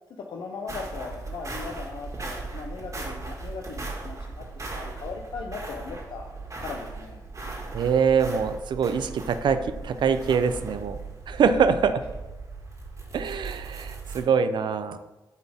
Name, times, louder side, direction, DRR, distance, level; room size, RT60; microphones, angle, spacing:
voice 1, 0.2-6.3 6.6-7.2 11.4-11.8, left 4 dB, 70° left, 2 dB, 0.6 m, -38 dB
sound 1, 0.7-14.2, right 3 dB, 40° right, 1.7 m, -38 dB
voice 2, 7.7-11.0 11.3-11.9 13.1-15.0, right 6 dB, 70° right, 10 dB, 0.5 m, -24 dB
8.2 x 4.0 x 3.5 m, 1.1 s
cardioid pair, 55°, 8 cm